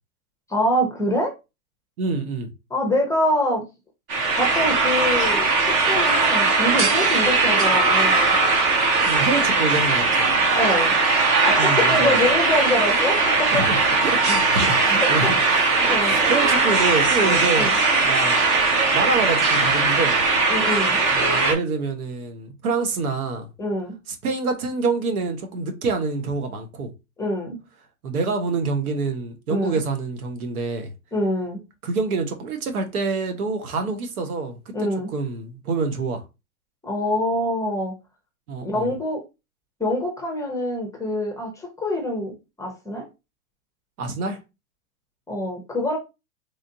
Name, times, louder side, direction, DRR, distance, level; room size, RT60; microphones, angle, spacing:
voice 1, 0.5-1.3 2.7-3.6 4.4-8.4 10.6-10.9 11.4-13.7 15.0-15.3 15.9-16.2 17.6-17.7 20.5-21.0 23.6-23.9 27.2-27.6 29.5-29.8 31.1-31.6 34.7-35.1 36.8-37.9 38.6-39.2 39.8-43.1 45.3-46.0, left 1 dB, 5° left, 0.7 m, -25 dB
voice 2, 2.0-2.5 9.0-10.3 11.6-12.2 13.5-17.7 18.0-18.4 18.9-20.2 21.1-23.5 24.2-26.9 28.0-30.9 31.8-36.2 38.5-38.9 44.0-44.4, right 4 dB, 80° right, 1.1 m, -26 dB
sound 1, 4.1-21.5, right 3 dB, 20° right, 0.3 m, -19 dB
3.3 x 2.5 x 2.7 m
hypercardioid pair, 125°, 43 cm